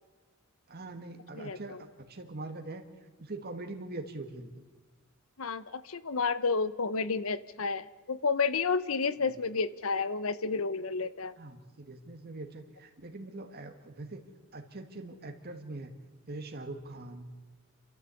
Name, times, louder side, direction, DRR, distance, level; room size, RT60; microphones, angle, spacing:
voice 1, 0.7-2.8 3.2-4.7 9.2-9.3 11.4-14.2 14.5-15.9 16.3-17.3, right 2 dB, 50° right, 6 dB, 1.6 m, -42 dB
voice 2, 1.3-1.8 5.4-11.3, left 4 dB, 85° left, 17 dB, 0.9 m, -31 dB
29.0 x 13.5 x 8.3 m, 1.3 s
head